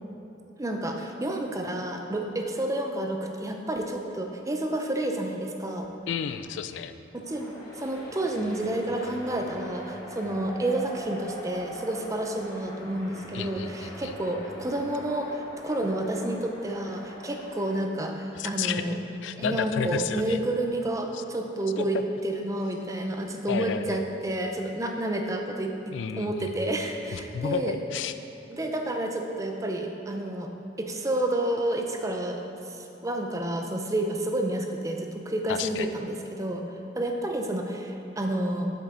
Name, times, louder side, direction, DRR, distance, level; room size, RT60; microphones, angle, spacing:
voice 1, 0.6-5.9 7.1-19.0 19.4-22.0 22.2-25.7 26.2-27.8 28.5-30.5 30.8-38.7, right 1 dB, 15° right, 3 dB, 0.5 m, -30 dB
voice 2, 6.1-6.9 13.3-14.1 18.3-19.0 19.2-20.4 21.1-21.2 21.8-21.9 23.5-24.1 25.9-26.7 27.1-28.1 35.5-35.9, left 6 dB, 70° left, 11 dB, 0.3 m, -32 dB
sound 1, 7.2-17.8, equal, 20° left, 1.7 m, -43 dB
8.1 x 7.3 x 3.8 m, 3.0 s
head